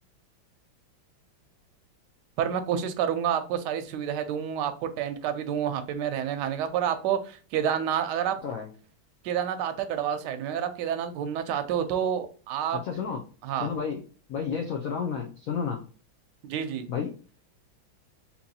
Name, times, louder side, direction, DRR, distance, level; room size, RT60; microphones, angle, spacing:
voice 1, 2.4-8.4 9.2-12.8 13.4-13.7 16.4-16.9, right 9 dB, 70° right, 8 dB, 1.1 m, -29 dB
voice 2, 12.8-13.2 13.5-14.0 14.3-15.8 16.9-17.1, left 6 dB, 85° left, 2 dB, 0.7 m, -31 dB
3.9 x 2.9 x 2.7 m, 0.38 s
omnidirectional pair, 2.2 m